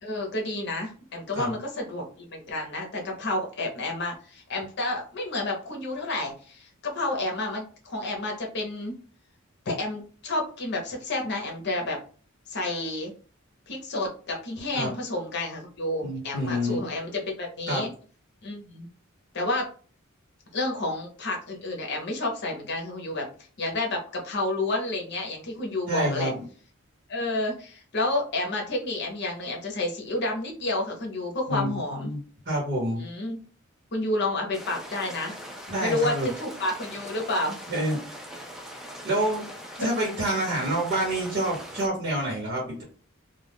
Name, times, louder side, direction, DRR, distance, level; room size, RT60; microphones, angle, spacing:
voice 1, 0.0-9.0 9.7-12.0 12.5-13.1 13.7-17.9 18.4-18.9 19.3-19.7 20.5-23.3 23.6-26.3 27.1-32.1 33.0-33.4 33.9-35.4 35.8-37.6 39.8-39.9 40.5-40.6, left 2 dB, 55° left, 0 dB, 0.8 m, -30 dB
voice 2, 16.0-16.8 17.7-17.9 25.9-26.4 31.5-31.7 32.0-32.2 32.5-33.0 35.7-36.3 37.7-38.0 39.0-39.4 39.8-42.8, right 1 dB, 50° right, -3 dB, 1.1 m, -27 dB
sound 1, 34.5-41.9, equal, ahead, 0.4 m, -41 dB
2.4 x 2.2 x 3.4 m, 0.40 s
head